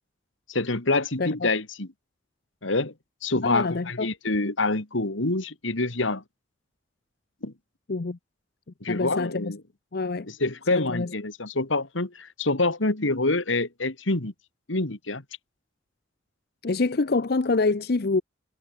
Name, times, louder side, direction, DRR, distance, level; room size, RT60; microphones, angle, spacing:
voice 1, 0.5-1.9 2.6-2.9 3.2-6.2 7.4-7.5 8.8-9.6 10.2-14.3 14.7-15.2, left 2 dB, 85° left, 2.5 m, -26 dB
voice 2, 1.2-1.5 3.4-4.1 7.9-8.2 8.9-9.5 9.9-10.3 10.7-11.1 16.6-18.2, left 3 dB, 55° left, 0.7 m, -26 dB
head